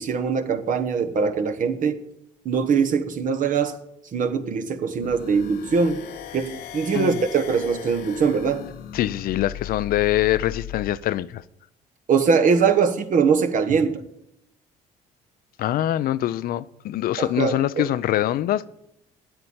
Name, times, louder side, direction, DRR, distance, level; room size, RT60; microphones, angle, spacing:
voice 1, 0.0-2.0 2.4-3.8 4.1-6.0 6.3-8.6 12.1-14.0 17.2-17.9, right 5 dB, 55° right, 1.3 m, -22 dB
sound 1, 5.0-10.9, left 11 dB, 85° left, 1.1 m, -37 dB
voice 2, 6.9-7.2 8.9-11.4 15.6-18.7, left 13 dB, 65° left, 0.5 m, -24 dB
8.9 x 8.0 x 8.7 m
supercardioid pair, 75°, 16 cm